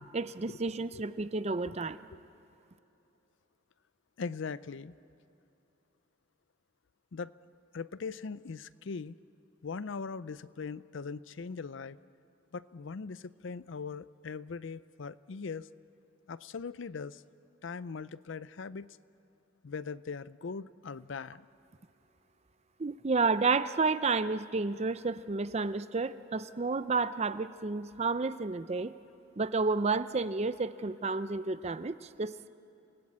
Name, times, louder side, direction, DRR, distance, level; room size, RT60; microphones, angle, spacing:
voice 1, 0.1-2.0 22.8-28.9 29.4-32.5, right 4 dB, 30° right, 14 dB, 0.5 m, -31 dB
voice 2, 4.2-4.9 7.1-7.3 7.7-9.1 9.6-12.0 12.5-15.7 16.3-17.2 17.6-18.9 19.6-21.5, left 5 dB, 65° left, 17 dB, 0.5 m, -40 dB
28.0 x 18.5 x 8.7 m, 2.9 s
head